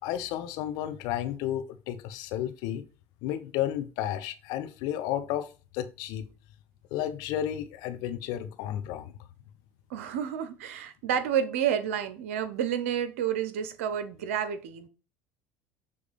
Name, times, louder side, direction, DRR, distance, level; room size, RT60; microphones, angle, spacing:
voice 1, 0.0-2.9 3.2-5.5 5.7-6.2 6.9-9.1, left 11 dB, 70° left, 0.8 m, -32 dB
voice 2, 9.9-14.9, right 9 dB, 85° right, 0.8 m, -30 dB
6.9 x 3.2 x 5.1 m
hypercardioid pair, 80°, 7 cm